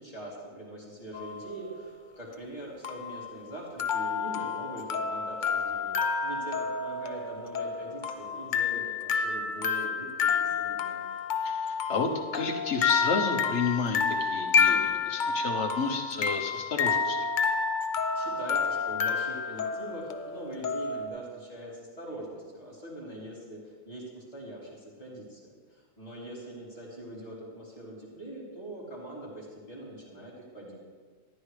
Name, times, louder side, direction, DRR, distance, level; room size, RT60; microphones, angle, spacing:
voice 1, 0.0-11.1 18.1-30.8, right 1 dB, 30° left, -6 dB, 3.1 m, -42 dB
sound 1, 1.1-1.6 2.8-21.1, left 5 dB, 50° left, 0.7 m, -29 dB
voice 2, 11.4-17.3, left 4 dB, 70° left, 4 dB, 1.3 m, -31 dB
14.0 x 11.0 x 3.3 m, 1.5 s
omnidirectional pair, 1.2 m